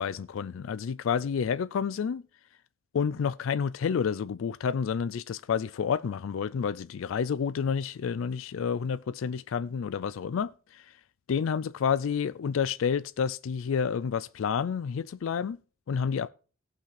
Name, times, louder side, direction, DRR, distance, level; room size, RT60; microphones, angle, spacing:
voice 1, 0.0-2.2 2.9-10.9 11.3-15.6 15.9-16.3, left 6 dB, 70° left, 0.3 m, -29 dB
18.0 x 6.0 x 3.2 m
head